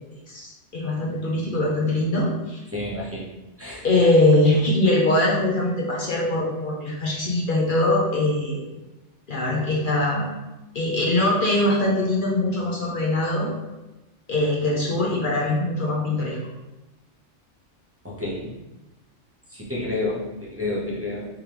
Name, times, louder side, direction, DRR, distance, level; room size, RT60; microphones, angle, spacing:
voice 1, 0.3-2.6 3.8-8.6 9.3-10.3 10.7-13.5 14.3-16.4, left 2 dB, 50° left, -3 dB, 0.7 m, -22 dB
voice 2, 2.7-3.2 3.6-3.8 18.0-18.5 19.5-20.2 20.5-21.3, left 2 dB, 15° right, -6 dB, 0.6 m, -29 dB
3.6 x 3.4 x 2.9 m, 1.0 s
omnidirectional pair, 1.3 m